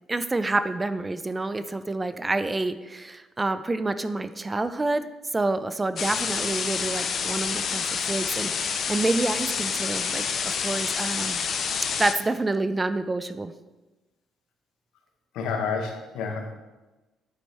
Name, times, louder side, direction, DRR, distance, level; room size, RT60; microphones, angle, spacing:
voice 1, 0.1-5.1 5.3-11.4 12.0-13.5, right 2 dB, 15° right, 12 dB, 0.3 m, -28 dB
sound 1, 6.0-12.1, left 6 dB, 50° left, 0.5 m, -28 dB
voice 2, 15.3-16.5, left 5 dB, 90° left, 3 dB, 1.0 m, -29 dB
9.1 x 4.1 x 3.4 m, 1.1 s
cardioid pair, 120°, 0 cm